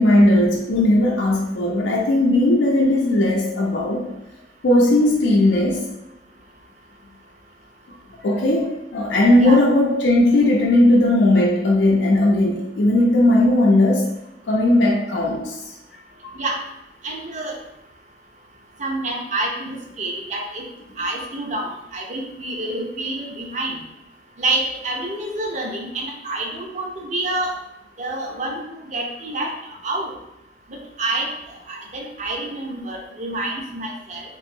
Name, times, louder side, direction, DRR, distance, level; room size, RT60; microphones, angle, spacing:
voice 1, 0.0-4.1 4.6-5.8 8.2-8.7 8.9-14.1 14.5-15.7 16.2-16.3, left 1 dB, 90° left, -3 dB, 0.4 m, -17 dB
voice 2, 17.0-17.6 18.8-20.6 21.0-23.8 24.4-27.5 28.0-29.5 29.8-30.1 31.0-31.3 31.7-34.2, right 2 dB, 40° right, 1 dB, 0.5 m, -27 dB
3.0 x 2.6 x 2.6 m, 0.87 s
head